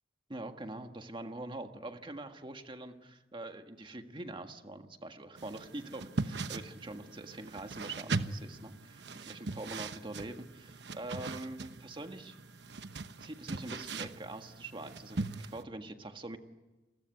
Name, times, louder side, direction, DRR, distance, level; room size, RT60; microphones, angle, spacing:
voice 1, 0.3-12.3 13.2-16.4, right 2 dB, 30° right, 6 dB, 1.7 m, -44 dB
sound 1, 5.4-15.6, right 3 dB, 75° right, 1.1 m, -40 dB
29.0 x 20.5 x 9.4 m, 1.1 s
head